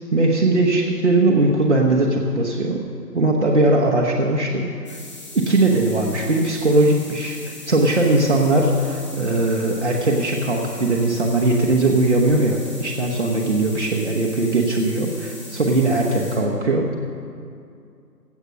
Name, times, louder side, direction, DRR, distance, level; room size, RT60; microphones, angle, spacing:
voice 1, 0.1-2.8 3.1-5.0 5.3-7.4 7.7-16.9, right 2 dB, 45° right, -2 dB, 1.1 m, -19 dB
sound 1, 4.9-16.4, left 2 dB, 20° left, 1.4 m, -40 dB
15.5 x 8.0 x 6.1 m, 2.4 s
figure-of-eight pair, 160°, 50 cm